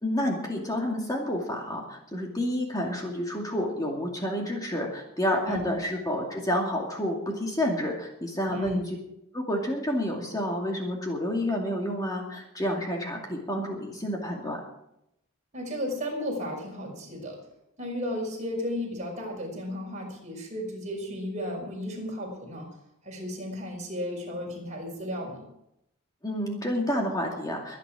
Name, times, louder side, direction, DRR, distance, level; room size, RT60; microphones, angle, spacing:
voice 1, 0.0-8.8 9.3-14.6 26.2-27.8, equal, 20° left, 0 dB, 2.4 m, -29 dB
voice 2, 8.5-8.8 15.5-17.4 17.8-22.7 23.0-25.4, left 1 dB, 35° right, -1 dB, 6.0 m, -34 dB
23.5 x 9.9 x 4.9 m, 0.81 s
head